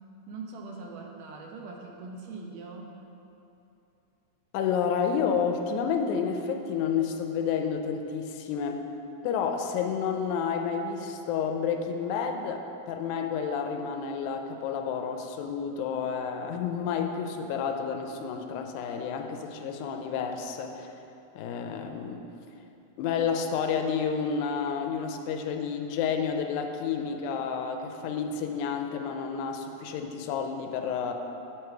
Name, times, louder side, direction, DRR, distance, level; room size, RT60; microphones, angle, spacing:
voice 1, 0.3-3.0, right 3 dB, 75° right, 0 dB, 1.8 m, -41 dB
voice 2, 4.5-8.8 9.2-20.9 21.4-22.3 23.0-31.1, left 6 dB, 85° left, 5 dB, 2.0 m, -30 dB
7.3 x 4.5 x 4.8 m, 2.8 s
omnidirectional pair, 3.4 m